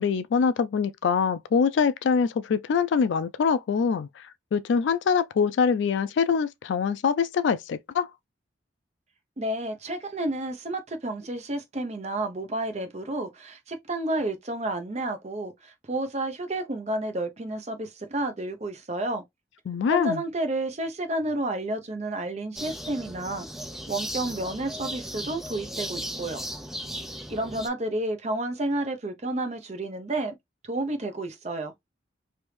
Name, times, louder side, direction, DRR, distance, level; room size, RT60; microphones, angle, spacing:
voice 1, 0.0-8.1 19.7-20.2, left 6 dB, 75° left, 0.3 m, -24 dB
voice 2, 9.4-19.2 19.9-23.5 23.9-26.4 27.3-30.4 30.6-31.7, right 1 dB, 35° right, 0.6 m, -31 dB
sound 1, 22.6-27.7, equal, ahead, 0.3 m, -36 dB
3.3 x 2.6 x 3.1 m
head